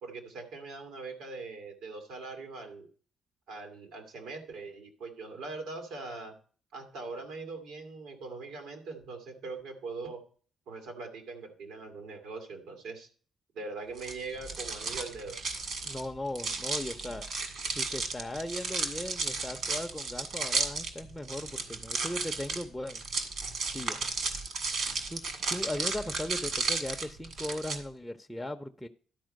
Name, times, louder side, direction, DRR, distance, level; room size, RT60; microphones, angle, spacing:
voice 1, 0.0-2.9 3.5-6.3 6.7-10.2 10.7-13.1 13.5-15.4, right 3 dB, 90° right, 4 dB, 2.0 m, -41 dB
sound 1, 14.0-27.8, right 4 dB, 65° right, 1.8 m, -34 dB
voice 2, 15.8-17.3 17.7-23.0 23.7-24.0 25.1-28.9, left 1 dB, 5° left, 4 dB, 0.6 m, -38 dB
12.0 x 4.3 x 6.4 m, 0.43 s
cardioid pair, 90°, 0 cm